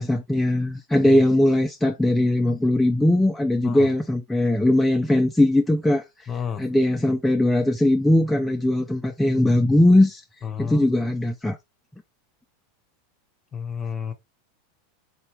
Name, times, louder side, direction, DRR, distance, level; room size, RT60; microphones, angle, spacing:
voice 1, 0.0-6.3 6.6-10.2 10.6-11.6, left 1 dB, 5° left, 0.5 m, -20 dB
voice 2, 6.3-6.6 10.4-10.9 13.5-14.1, left 7 dB, 25° left, 0.9 m, -31 dB
4.3 x 2.7 x 3.2 m
figure-of-eight pair, 85°, 0 cm